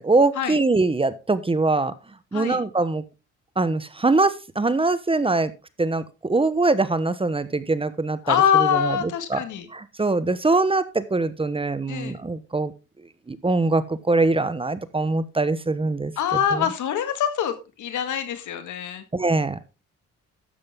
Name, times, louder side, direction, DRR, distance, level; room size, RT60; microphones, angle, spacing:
voice 1, 0.0-1.9 2.3-3.0 3.6-5.5 5.8-8.3 8.8-9.0 9.3-9.4 9.7-12.7 13.3-16.1 19.1-19.6, right 3 dB, 20° right, 13 dB, 1.0 m, -22 dB
voice 2, 8.2-9.7 11.9-12.2 16.2-19.0, left 8 dB, 80° left, 9 dB, 1.9 m, -24 dB
12.5 x 7.9 x 3.6 m, 0.29 s
cardioid pair, 90°, 30 cm